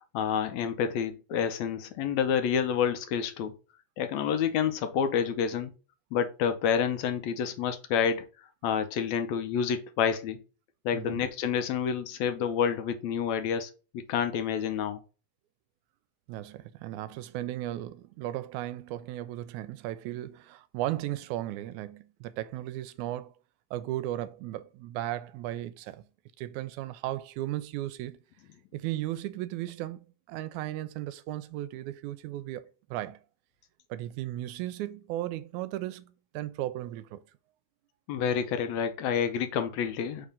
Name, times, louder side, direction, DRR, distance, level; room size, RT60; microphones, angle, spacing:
voice 1, 0.1-3.5 4.0-5.7 6.1-8.2 8.6-10.4 10.9-15.0 38.1-40.3, left 7 dB, 75° left, 1.8 m, -28 dB
voice 2, 10.9-11.2 16.3-23.3 23.7-26.1 26.4-28.2 28.7-33.2 33.9-37.2, right 14 dB, 85° right, 1.9 m, -36 dB
4.8 x 3.7 x 5.4 m
omnidirectional pair, 3.4 m